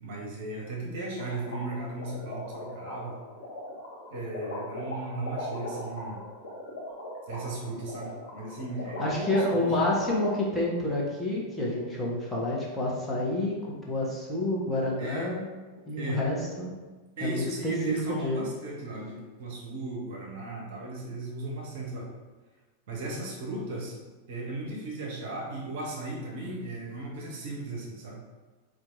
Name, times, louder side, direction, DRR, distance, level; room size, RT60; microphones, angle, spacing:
voice 1, 0.0-3.2 4.1-6.2 7.3-9.8 15.0-15.3 16.0-16.2 17.2-22.1 22.9-24.0 24.3-28.2, right 2 dB, 50° right, -2 dB, 0.9 m, -36 dB
sound 1, 1.2-10.3, left 1 dB, 65° left, 1.1 m, -38 dB
voice 2, 9.0-15.4 15.9-16.7 17.2-18.5, left 1 dB, 5° left, -6 dB, 1.0 m, -29 dB
4.4 x 2.5 x 3.7 m, 1.3 s
figure-of-eight pair, 90°, 0 cm